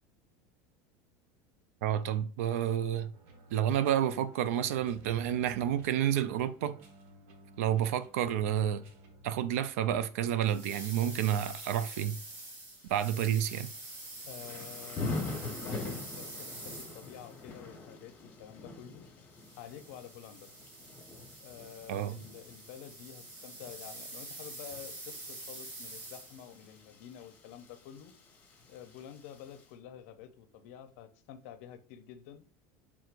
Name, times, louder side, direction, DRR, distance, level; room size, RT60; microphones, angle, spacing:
voice 1, 1.8-3.1 3.5-6.8 7.6-8.8 9.2-12.1 12.9-13.7 21.9-22.2, right 10 dB, 90° right, 0.4 m, -30 dB
sound 1, 3.1-9.4, right 2 dB, 70° right, 1.0 m, -57 dB
sound 2, 10.4-17.4 19.3-26.6, right 2 dB, 40° right, 1.6 m, -46 dB
Thunder / Rain, 12.8-29.7, left 3 dB, 25° left, 1.2 m, -45 dB
voice 2, 14.3-19.1 19.6-20.5 21.4-28.1 28.7-32.4, left 10 dB, 70° left, 0.6 m, -49 dB
4.5 x 3.6 x 2.5 m
cardioid pair, 160°, 8 cm